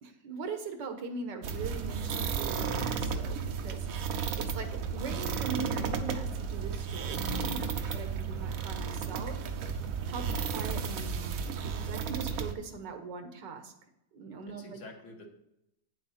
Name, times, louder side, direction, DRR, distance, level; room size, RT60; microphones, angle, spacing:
voice 1, 0.0-9.4 10.1-10.3 10.5-13.7 14.1-14.8, right 4 dB, 80° right, 7 dB, 1.8 m, -41 dB
sound 1, 1.4-12.5, right 6 dB, 60° right, 1.0 m, -33 dB
voice 2, 7.4-7.8 10.2-10.5 14.5-15.3, left 1 dB, 60° left, 1 dB, 2.0 m, -48 dB
9.0 x 7.7 x 4.2 m, 0.85 s
omnidirectional pair, 1.9 m